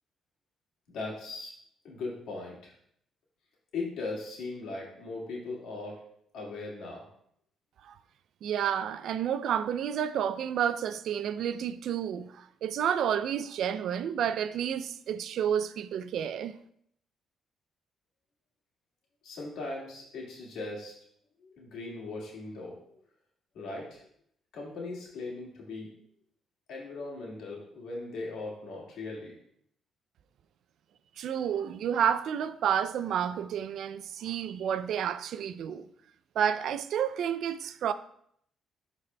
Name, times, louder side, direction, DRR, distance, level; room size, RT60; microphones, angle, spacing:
voice 1, 0.9-1.5 1.8-2.7 3.7-6.0 6.3-7.1 19.2-20.9 21.4-22.9 23.5-24.1 24.5-25.9 26.7-29.3, left 3 dB, 80° left, 1.9 m, -39 dB
voice 2, 8.4-16.6 31.2-35.9 36.4-37.9, right 9 dB, 75° right, 0.3 m, -30 dB
12.0 x 4.1 x 2.2 m
cardioid pair, 90°, 0 cm